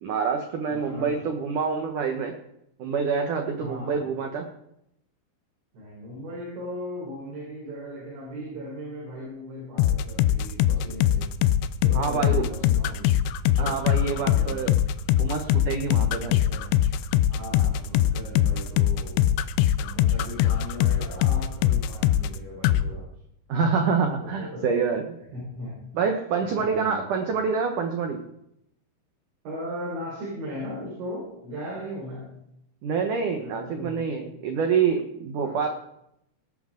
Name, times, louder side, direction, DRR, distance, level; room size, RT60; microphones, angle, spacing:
voice 1, 0.0-2.3 2.8-4.5 11.9-12.5 13.6-14.8 15.2-16.4 23.5-25.0 25.9-28.2 32.8-35.7, right 5 dB, 90° right, 5 dB, 1.7 m, -26 dB
voice 2, 0.7-1.2 3.6-4.0 5.7-11.3 11.8-13.2 13.5-14.7 16.1-16.7 17.3-19.3 19.8-23.1 24.2-24.7 25.3-25.7 26.4-27.3 29.5-32.3 33.3-34.0 35.4-35.7, equal, 70° right, -4 dB, 7.0 m, -38 dB
sound 1, 9.8-22.4 22.6-22.8, left 12 dB, 80° left, 2.8 m, -22 dB
19.0 x 11.0 x 3.8 m, 0.77 s
omnidirectional pair, 5.4 m